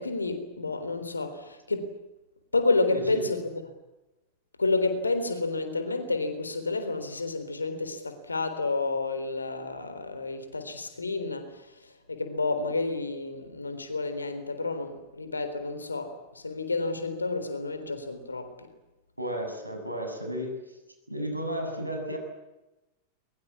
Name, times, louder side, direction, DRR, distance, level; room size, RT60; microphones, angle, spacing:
voice 1, 0.0-1.9 2.5-3.6 4.6-18.7, left 3 dB, 80° left, 3.8 m, -30 dB
voice 2, 2.9-3.3 19.2-20.6 21.1-22.2, equal, 85° right, 6.9 m, -33 dB
22.5 x 22.0 x 8.6 m
figure-of-eight pair, 90°, 0 cm